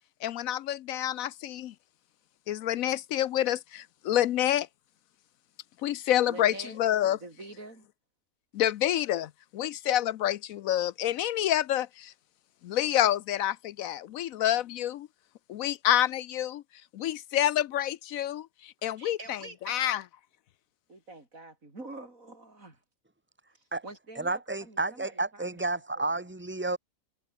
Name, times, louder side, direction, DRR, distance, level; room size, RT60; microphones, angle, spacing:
voice 1, 0.2-1.7 2.5-4.7 5.8-7.2 8.5-12.1 12.6-15.1 15.5-16.6 16.9-19.4 19.7-20.0, left 12 dB, 75° left, 1.0 m, -28 dB
voice 2, 6.3-6.8 7.1-7.9 18.9-19.8 20.9-22.8 23.8-26.1, right 2 dB, 65° right, 5.5 m, -46 dB
voice 3, 24.2-26.8, right 2 dB, 10° right, 2.4 m, -31 dB
omnidirectional pair, 1.5 m